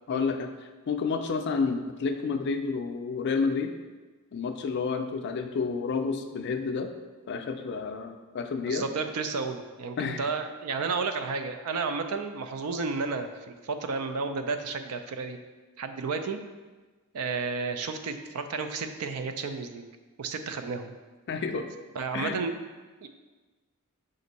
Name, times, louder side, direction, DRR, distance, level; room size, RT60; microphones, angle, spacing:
voice 1, 0.1-0.5 0.9-3.7 4.3-6.9 7.3-8.9 10.0-10.3 21.3-21.7 22.1-22.4, left 5 dB, 50° left, 6 dB, 0.4 m, -30 dB
voice 2, 8.6-15.4 15.8-16.4 17.1-19.9 20.2-20.9 22.0-22.5 23.0-23.1, right 4 dB, 85° right, 7 dB, 0.4 m, -32 dB
5.1 x 2.6 x 4.0 m, 1.3 s
head